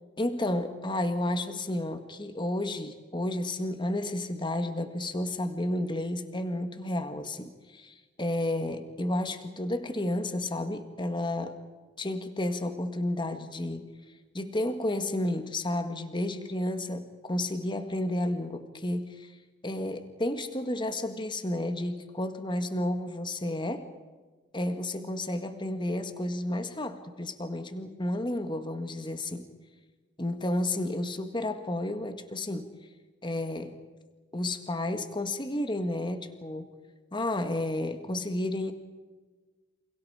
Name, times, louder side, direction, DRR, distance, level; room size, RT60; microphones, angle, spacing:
voice 1, 0.2-11.6 12.0-13.9 14.3-19.3 19.6-23.9 24.5-29.5 30.2-32.7 33.2-33.8 34.3-36.7 37.1-38.7, left 1 dB, 25° left, 8 dB, 1.7 m, -31 dB
29.0 x 28.5 x 4.9 m, 1.3 s
head